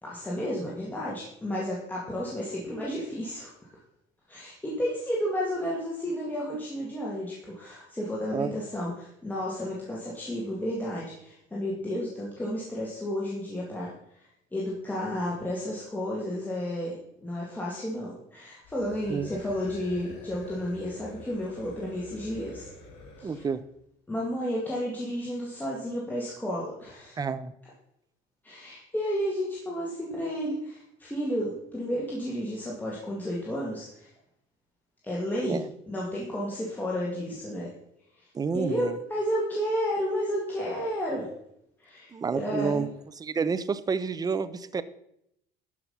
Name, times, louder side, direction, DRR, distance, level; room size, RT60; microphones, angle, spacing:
voice 1, 0.0-3.5 4.3-13.9 14.5-22.7 23.2-23.4 24.1-27.2 28.4-34.1 35.0-37.7 38.2-38.3 38.5-41.3 41.8-42.9, equal, 10° left, -5 dB, 2.2 m, -32 dB
sound 1, 18.6-23.6, left 1 dB, 75° left, 4.0 m, -48 dB
voice 2, 23.2-23.6 27.2-27.5 35.5-35.7 38.3-39.0 42.1-42.9 43.2-44.8, right 5 dB, 20° right, 15 dB, 0.6 m, -29 dB
12.5 x 5.9 x 5.6 m, 0.77 s
cardioid pair, 135°, 19 cm